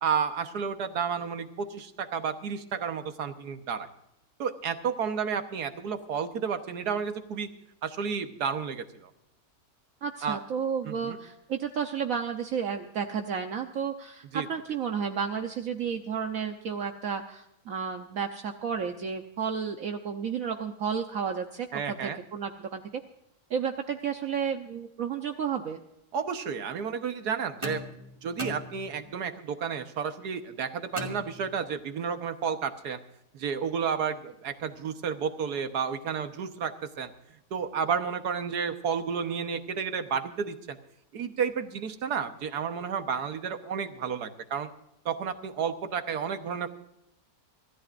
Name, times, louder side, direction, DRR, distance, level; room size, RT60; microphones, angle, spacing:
voice 1, 0.0-3.9 4.4-7.5 7.8-9.1 10.2-10.4 10.8-11.2 14.3-14.5 21.7-22.2 26.1-27.8 28.2-33.0 33.3-37.1 37.5-40.8 41.1-44.7 45.0-46.7, right 6 dB, 85° right, 8 dB, 1.7 m, -31 dB
voice 2, 10.0-22.8 23.5-25.8, right 7 dB, 65° right, 4 dB, 1.3 m, -32 dB
sound 1, 27.6-29.3 31.0-31.9, left 1 dB, 20° right, 2.0 m, -39 dB
25.5 x 14.0 x 2.5 m, 0.81 s
omnidirectional pair, 1.6 m